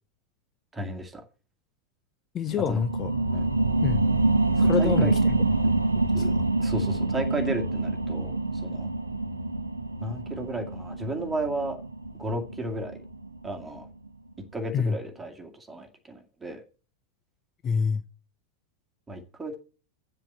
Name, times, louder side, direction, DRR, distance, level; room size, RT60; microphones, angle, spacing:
voice 1, 0.7-1.2 2.7-2.8 3.3-3.5 4.6-5.1 6.1-6.3 6.6-8.3 8.6-8.9 10.0-11.8 12.2-13.0 13.4-13.9 14.5-16.6 19.1-19.6, right 1 dB, 10° right, 2.2 m, -33 dB
voice 2, 2.3-3.1 3.8-4.0 4.6-5.4 6.1-6.3 14.7-15.0 17.6-18.0, left 6 dB, 25° left, 0.6 m, -26 dB
sound 1, 2.5-13.6 14.1-14.2, right 2 dB, 80° right, 0.8 m, -26 dB
7.5 x 6.6 x 7.8 m
figure-of-eight pair, 90°, 0 cm